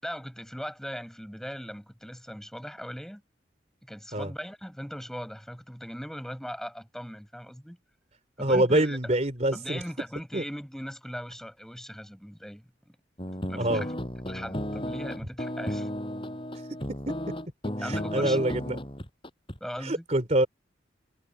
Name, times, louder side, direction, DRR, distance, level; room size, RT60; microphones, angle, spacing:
voice 1, 0.0-3.2 3.8-7.8 8.4-9.1 9.5-13.0 13.5-13.9 14.3-15.9 17.8-18.6 19.6-20.0, equal, ahead, 5.9 m, -39 dB
voice 2, 8.4-9.8 10.3-10.4 13.6-13.8 17.6-18.8 19.8-20.5, right 1 dB, 40° right, 3.3 m, -25 dB
sound 1, 13.2-19.6, equal, 30° left, 7.1 m, -34 dB
head